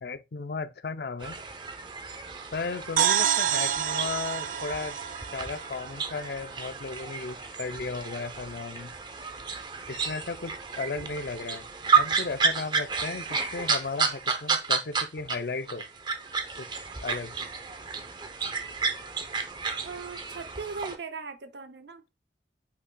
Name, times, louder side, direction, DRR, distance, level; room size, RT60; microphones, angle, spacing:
voice 1, 0.0-1.4 2.5-5.0 5.3-8.9 9.9-11.6 12.0-15.8 16.6-16.7 17.0-17.3, left 4 dB, 65° left, 0.5 m, -35 dB
sound 1, 1.2-15.4 15.7-21.0, right 5 dB, 25° right, 0.7 m, -31 dB
sound 2, 3.0-6.6, right 10 dB, 50° right, 0.3 m, -28 dB
voice 2, 19.8-22.0, right 4 dB, 80° right, 0.7 m, -39 dB
8.4 x 5.6 x 2.2 m
head